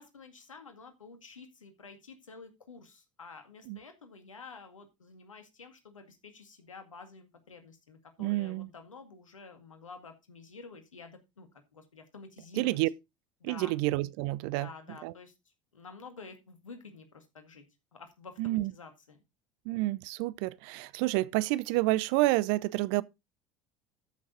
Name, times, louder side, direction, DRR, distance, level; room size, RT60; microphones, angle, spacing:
voice 1, 0.0-12.8 13.4-13.7 14.5-15.3 15.7-17.6 18.0-19.2, left 4 dB, 90° left, 2.0 m, -50 dB
voice 2, 8.2-8.7 12.6-12.9 13.4-14.7 15.0-15.1 18.4-18.7 19.7-23.0, right 19 dB, 60° right, 0.6 m, -29 dB
13.0 x 6.4 x 3.9 m
hypercardioid pair, 70°, 16 cm